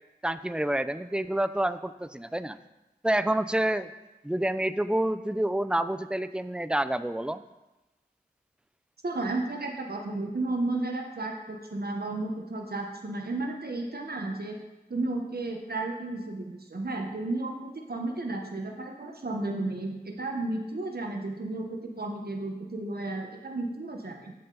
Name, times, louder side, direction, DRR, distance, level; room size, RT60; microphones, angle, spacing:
voice 1, 0.2-2.6 3.0-3.9 4.2-7.4, right 1 dB, 5° right, 13 dB, 0.3 m, -28 dB
voice 2, 9.0-14.6 14.9-24.3, right 2 dB, 65° right, 2 dB, 0.9 m, -33 dB
7.5 x 6.8 x 3.9 m, 1.0 s
wide cardioid pair, 40°, 17 cm